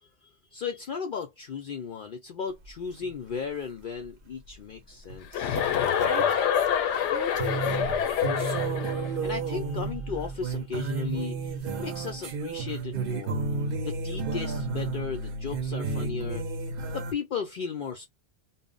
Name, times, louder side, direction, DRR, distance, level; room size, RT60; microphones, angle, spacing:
voice 1, 0.0-5.6 9.2-13.5 13.8-16.5 16.9-18.1, left 6 dB, 60° left, 0.6 m, -36 dB
sound 1, 2.7-2.8 3.1-3.2 5.1-5.7 6.2-6.4 6.6-6.7 7.4-17.1, right 4 dB, 60° right, 0.7 m, -32 dB
Chuckle chortle, 5.3-9.1, left 9 dB, 90° left, 0.9 m, -26 dB
voice 2, 6.0-8.7, right 1 dB, 20° right, 0.8 m, -40 dB
2.1 x 2.0 x 3.6 m
omnidirectional pair, 1.2 m